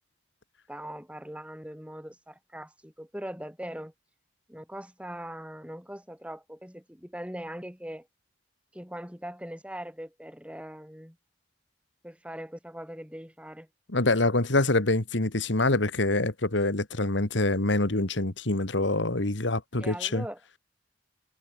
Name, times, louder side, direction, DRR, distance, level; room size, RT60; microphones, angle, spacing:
voice 1, 0.7-3.9 4.5-8.1 8.7-11.2 12.0-13.7 19.8-20.4, equal, 5° right, 6.7 m, -41 dB
voice 2, 13.9-20.2, left 2 dB, 85° left, 2.2 m, -25 dB
head